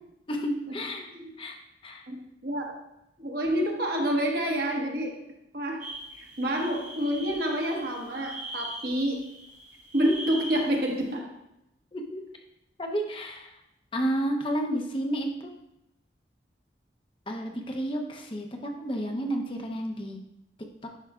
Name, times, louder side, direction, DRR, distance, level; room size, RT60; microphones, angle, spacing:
voice 1, 0.3-1.6 1.8-2.1 11.9-12.2 12.8-13.6 13.9-15.5 17.3-20.2, right 1 dB, 30° left, 2 dB, 0.8 m, -31 dB
voice 2, 2.1-2.7 3.2-5.2 5.5-9.4 9.9-11.3, equal, 60° right, -1 dB, 1.3 m, -28 dB
sound 1, 5.8-10.8, equal, 45° right, 1.6 m, -41 dB
10.0 x 5.9 x 2.4 m, 0.86 s
head